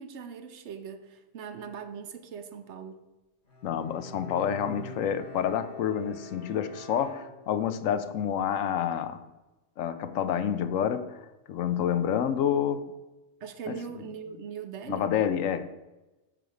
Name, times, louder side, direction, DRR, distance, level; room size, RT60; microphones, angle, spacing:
voice 1, 0.0-3.1 13.4-15.1, right 7 dB, 65° right, 0.9 m, -40 dB
Bowed string instrument, 3.5-7.8, left 1 dB, 55° left, 1.6 m, -46 dB
voice 2, 3.6-9.2 9.8-11.2 11.5-12.9 13.7-13.8 14.9-15.7, left 8 dB, 80° left, 1.0 m, -28 dB
7.3 x 4.9 x 7.0 m
omnidirectional pair, 1.3 m